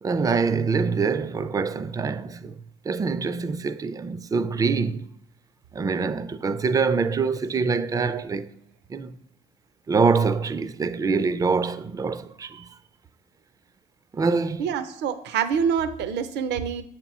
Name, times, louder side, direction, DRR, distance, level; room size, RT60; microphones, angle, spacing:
voice 1, 0.0-2.6 2.9-5.0 5.7-8.5 8.9-9.2 9.9-12.7 14.1-14.6, right 4 dB, 20° right, 0.3 m, -25 dB
voice 2, 14.6-16.8, right 7 dB, 70° right, 0.6 m, -26 dB
7.3 x 3.0 x 5.9 m
cardioid pair, 95°, 19 cm